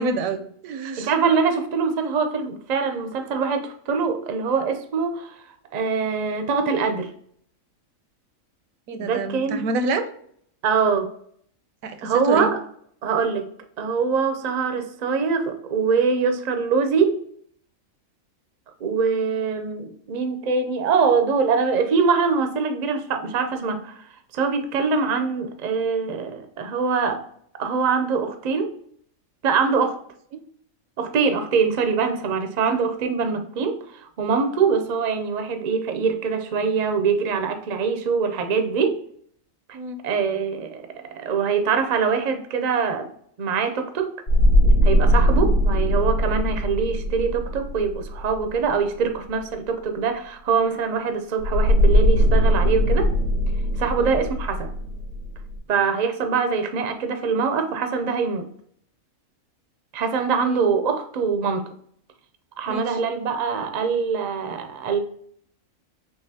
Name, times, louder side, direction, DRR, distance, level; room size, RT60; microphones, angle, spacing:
voice 1, 0.0-1.1 8.9-10.1 11.8-12.5 30.3-30.4 39.7-40.0 53.9-54.1 60.4-60.7 62.7-63.0, right 3 dB, 80° right, 1.0 m, -28 dB
voice 2, 1.0-5.3 5.7-7.1 8.9-9.6 10.6-11.1 12.0-12.6 13.0-13.5 13.8-17.2 18.8-24.0 24.3-27.2 27.6-28.7 29.4-30.0 31.0-33.8 34.2-39.0 40.0-40.9 41.1-43.1 43.4-44.1 44.8-53.1 53.8-54.7 55.7-58.5 59.9-61.7 62.6-65.0, right 5 dB, 50° right, 0.5 m, -23 dB
sound 1, 44.3-48.7 51.4-55.5, equal, 90° left, 1.8 m, -20 dB
6.4 x 2.4 x 2.7 m
omnidirectional pair, 1.5 m